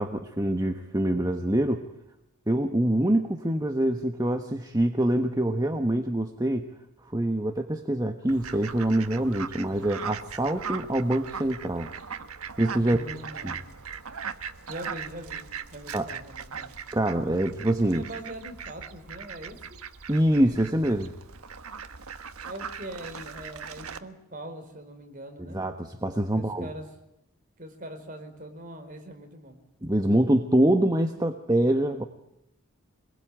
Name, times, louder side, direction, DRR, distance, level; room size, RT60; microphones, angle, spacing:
voice 1, 0.0-1.8 2.5-6.7 7.1-11.9 12.6-13.0 13.4-13.6 15.9-16.1 16.9-18.0 20.1-21.1 25.5-26.7 29.8-32.0, right 1 dB, 15° right, 5 dB, 1.3 m, -25 dB
Fowl, 8.3-24.0, right 6 dB, 85° right, 1.4 m, -39 dB
voice 2, 12.8-13.7 14.7-16.7 17.9-19.8 22.4-25.6 26.3-26.8 27.6-29.6, right 1 dB, 40° right, 5 dB, 4.6 m, -42 dB
26.0 x 21.0 x 9.2 m, 0.83 s
head